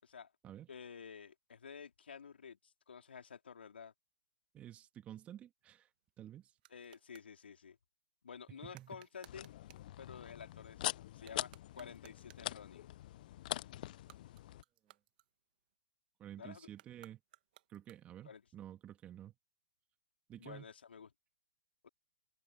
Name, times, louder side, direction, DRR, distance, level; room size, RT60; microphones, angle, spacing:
voice 1, 0.7-3.9 6.7-7.8 8.2-9.5 10.0-12.9 16.4-16.7 18.2-18.4 20.4-21.1 21.8-21.9, left 6 dB, 75° left, 4.3 m, -51 dB
voice 2, 4.5-5.9 6.2-6.5 8.5-9.0 16.2-17.2 17.7-19.3 20.3-20.7, right 11 dB, 20° right, 2.6 m, -51 dB
sound 1, 5.6-7.3 8.7-9.9 11.1-12.6 13.9-15.7 16.7-18.3, right 14 dB, 50° right, 1.7 m, -63 dB
sound 2, 9.3-14.6, left 14 dB, 50° left, 0.7 m, -44 dB
hypercardioid pair, 125°, 6 cm